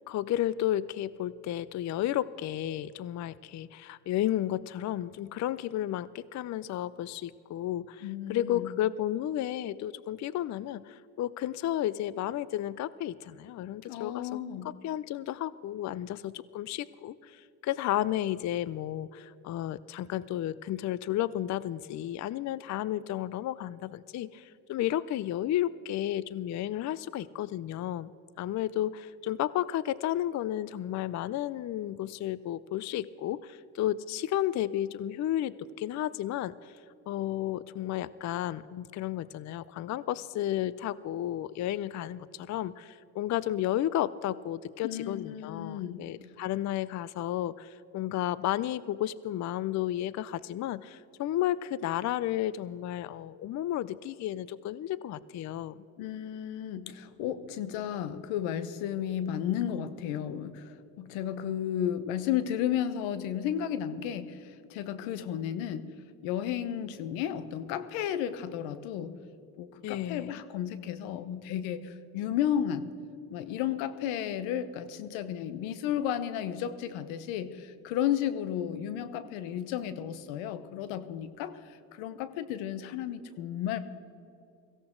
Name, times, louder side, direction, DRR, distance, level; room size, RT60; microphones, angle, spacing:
voice 1, 0.1-14.4 14.6-28.1 28.4-36.8 37.1-55.8 69.8-70.3, left 12 dB, 40° left, 19 dB, 0.4 m, -32 dB
voice 2, 8.0-8.7 13.9-14.7 44.8-46.1 56.0-65.9 66.2-69.1 69.6-72.9 73.3-81.6 81.9-83.8, left 10 dB, 80° left, 13 dB, 1.0 m, -33 dB
17.0 x 15.5 x 3.8 m, 2.7 s
supercardioid pair, 75°, 46 cm